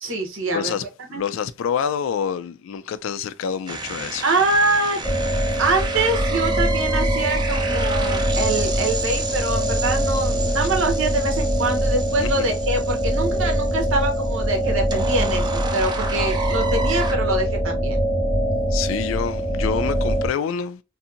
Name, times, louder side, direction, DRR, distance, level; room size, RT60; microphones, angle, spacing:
voice 1, 0.0-0.7 1.1-1.2 4.2-5.0 5.6-18.0, right 2 dB, 85° right, 0.9 m, -24 dB
voice 2, 0.5-0.8 1.1-4.3 12.2-12.5 18.7-20.8, left 7 dB, 75° left, 0.3 m, -27 dB
sound 1, 3.7-17.1, right 3 dB, 20° right, 0.4 m, -32 dB
sound 2, 5.0-20.3, right 1 dB, 5° left, 0.8 m, -23 dB
2.7 x 2.6 x 2.5 m
head